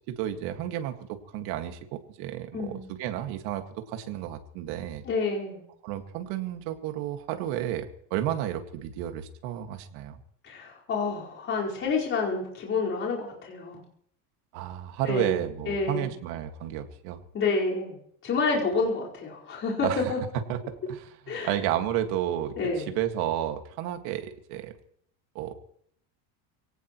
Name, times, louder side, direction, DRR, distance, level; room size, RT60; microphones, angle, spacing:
voice 1, 0.1-5.0 5.8-10.2 14.5-17.2 19.8-20.1 20.5-24.7 25.4-25.6, right 11 dB, 60° right, 6 dB, 2.0 m, -32 dB
voice 2, 2.5-2.8 5.0-5.6 10.4-13.8 15.1-15.4 15.7-16.1 17.3-18.0 18.2-20.2 21.3-21.5 22.6-22.9, left 4 dB, 30° left, -4 dB, 4.9 m, -28 dB
24.0 x 17.5 x 3.1 m, 0.66 s
cardioid pair, 165°, 43 cm